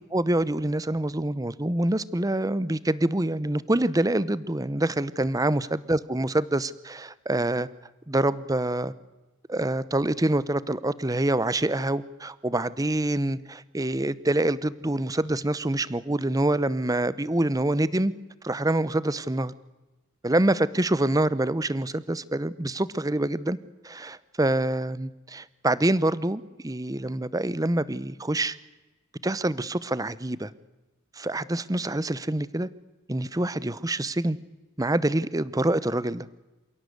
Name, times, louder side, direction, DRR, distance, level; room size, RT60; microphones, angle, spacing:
voice 1, 0.1-7.7 8.1-8.9 9.5-18.1 18.4-19.5 20.2-23.6 23.8-28.6 29.2-30.5 31.2-32.7 33.1-34.4 34.8-36.3, right 1 dB, 15° right, 18 dB, 0.8 m, -26 dB
28.0 x 17.0 x 8.0 m, 1.1 s
head